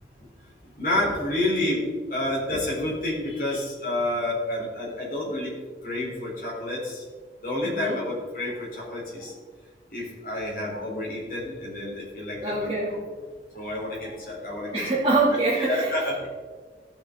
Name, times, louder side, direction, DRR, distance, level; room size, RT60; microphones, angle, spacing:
voice 1, 0.4-1.8 2.1-5.5 5.8-7.0 7.4-9.3 9.9-12.7 13.5-14.8 15.6-16.3, left 1 dB, 50° left, -5 dB, 3.8 m, -29 dB
voice 2, 7.6-8.0 12.3-13.0 14.7-16.3, right 2 dB, 25° right, -10 dB, 2.7 m, -25 dB
17.5 x 6.8 x 3.9 m, 1.5 s
head